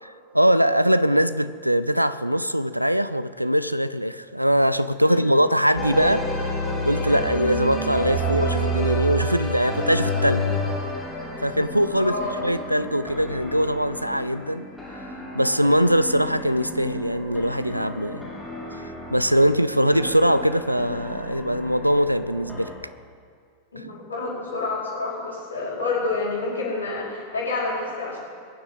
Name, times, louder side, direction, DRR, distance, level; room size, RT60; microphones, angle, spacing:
voice 1, 0.0-10.5 11.4-12.1 12.4-14.7 15.3-18.3 18.8-22.7, equal, 90° right, 14 dB, 0.5 m, -22 dB
voice 2, 5.0-5.3 11.9-12.4 23.7-28.2, left 3 dB, 75° left, -5 dB, 5.0 m, -28 dB
sound 1, 5.7-22.7, equal, ahead, 4.3 m, -30 dB
21.5 x 7.4 x 8.0 m, 2.2 s
figure-of-eight pair, 90°, 0 cm